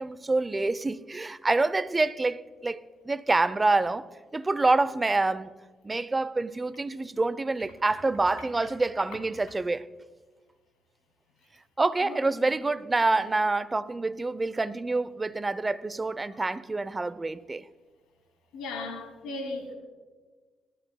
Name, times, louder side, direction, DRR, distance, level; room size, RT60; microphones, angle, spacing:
voice 1, 0.0-5.5 5.8-9.9 11.8-17.7, right 3 dB, 25° right, 0.6 m, -27 dB
voice 2, 12.0-12.5 18.5-19.7, left 3 dB, 80° left, 2.6 m, -37 dB
20.0 x 13.5 x 2.3 m
hypercardioid pair, 50°, 0 cm